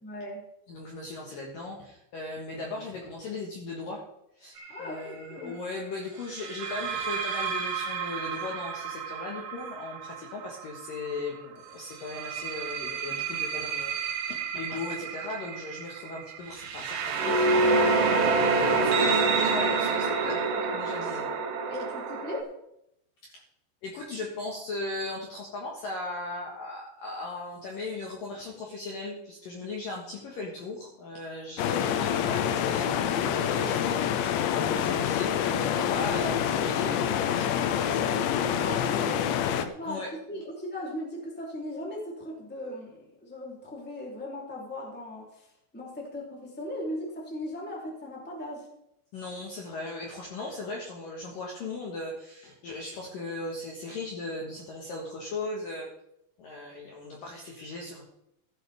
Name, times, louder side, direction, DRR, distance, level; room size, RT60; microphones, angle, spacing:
voice 1, 0.0-0.4 4.7-5.6 21.7-22.5 38.5-39.3 39.8-48.7, left 1 dB, 5° left, -3 dB, 2.1 m, -38 dB
voice 2, 0.7-4.0 4.4-17.5 17.9-21.3 23.2-23.4 23.8-38.6 39.8-40.1 49.1-55.9 56.4-58.0, left 2 dB, 60° left, -2 dB, 2.5 m, -38 dB
sound 1, 4.6-4.9 6.4-11.1 11.9-22.4, right 4 dB, 80° right, 4.0 m, -28 dB
sound 2, 31.6-39.7, left 9 dB, 80° left, 2.7 m, -27 dB
15.5 x 11.0 x 3.6 m, 0.79 s
omnidirectional pair, 5.6 m